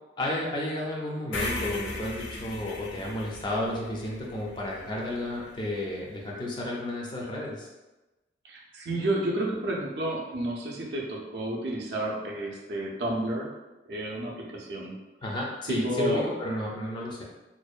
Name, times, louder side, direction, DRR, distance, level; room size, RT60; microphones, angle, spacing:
voice 1, 0.2-7.7 15.2-17.2, left 1 dB, 25° left, -2 dB, 0.4 m, -32 dB
sound 1, 1.3-5.5, left 2 dB, 90° left, 0.4 m, -37 dB
voice 2, 8.4-13.5 13.9-15.0 15.7-16.2, right 1 dB, 65° right, -1 dB, 0.5 m, -31 dB
2.6 x 2.1 x 2.3 m, 1.1 s
head